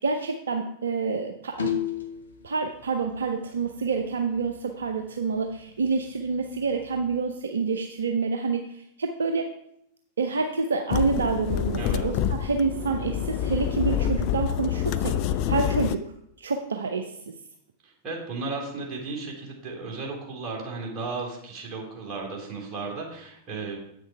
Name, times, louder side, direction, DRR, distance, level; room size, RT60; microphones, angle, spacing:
voice 1, 0.0-1.7 2.4-9.5 10.2-17.3, right 4 dB, 70° right, 5 dB, 0.6 m, -28 dB
sound 1, 1.6-2.3 4.0-4.1 4.4-4.5 4.9-5.0 5.5-5.6 6.4-7.2, left 7 dB, 70° left, 1.0 m, -29 dB
sound 2, 10.9-16.0, left 9 dB, 45° left, 0.4 m, -27 dB
voice 2, 17.8-23.8, right 3 dB, 35° right, -1 dB, 2.9 m, -35 dB
8.3 x 6.4 x 4.7 m, 0.74 s
figure-of-eight pair, 90°, 0 cm